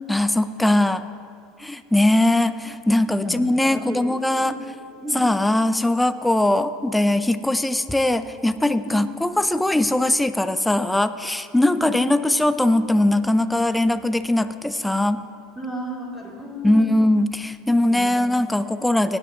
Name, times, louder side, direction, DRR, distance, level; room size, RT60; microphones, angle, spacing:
voice 1, 0.1-1.0 1.6-4.6 5.1-15.2 16.6-19.2, left 1 dB, 5° left, 12 dB, 0.5 m, -20 dB
voice 2, 3.2-4.5 5.0-5.2 8.9-9.0 11.7-11.9 15.6-16.9 17.9-18.4, right 1 dB, 10° right, -4 dB, 2.5 m, -34 dB
18.0 x 10.0 x 2.8 m, 2.4 s
hypercardioid pair, 80°, 0 cm